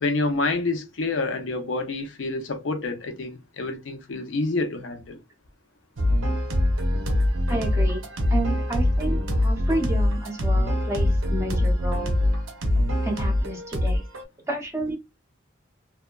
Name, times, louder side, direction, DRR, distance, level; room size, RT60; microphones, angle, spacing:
voice 1, 0.0-5.2, left 3 dB, 70° left, 0.5 m, -28 dB
sound 1, 6.0-14.2, left 1 dB, 90° right, 0.7 m, -23 dB
voice 2, 7.5-8.0 8.3-12.1 13.0-14.0 14.5-15.0, right 1 dB, 15° right, 0.6 m, -30 dB
2.7 x 2.2 x 2.2 m
head